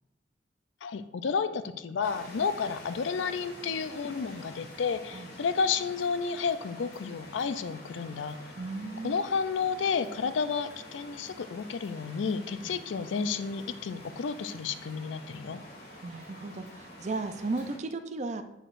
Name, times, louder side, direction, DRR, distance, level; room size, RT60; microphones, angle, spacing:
voice 1, 0.8-8.4 9.0-15.6, left 5 dB, 80° left, 12 dB, 0.4 m, -31 dB
sound 1, 2.0-17.8, left 1 dB, 55° left, 2.1 m, -48 dB
voice 2, 8.6-9.2 12.6-12.8 16.0-18.4, right 3 dB, 40° right, 9 dB, 0.4 m, -35 dB
7.8 x 6.3 x 2.5 m, 0.92 s
head